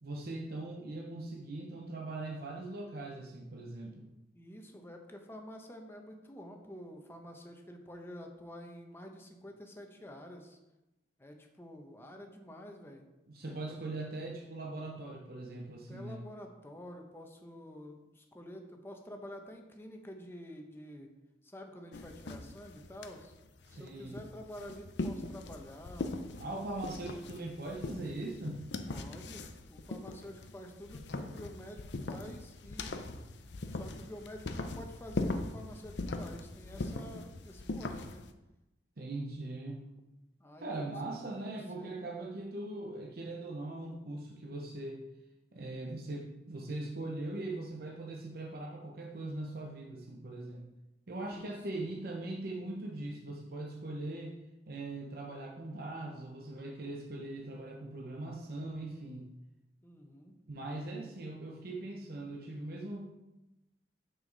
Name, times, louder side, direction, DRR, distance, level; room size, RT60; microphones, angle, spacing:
voice 1, 0.0-4.1 13.3-16.3 23.7-24.2 26.4-28.6 39.0-39.9 40.6-45.0 45.5-50.7 51.1-54.4 54.7-59.3 60.5-63.2, right 2 dB, 55° right, 0 dB, 0.8 m, -41 dB
voice 2, 4.3-10.6 11.2-13.0 13.5-13.8 15.9-21.1 21.4-23.3 23.7-26.1 28.9-33.0 33.7-38.3 40.4-42.0 51.3-51.8 59.8-60.4, equal, 15° left, 3 dB, 0.9 m, -49 dB
sound 1, 21.9-38.3, left 2 dB, 70° left, 0.6 m, -41 dB
7.2 x 6.2 x 3.9 m, 0.99 s
head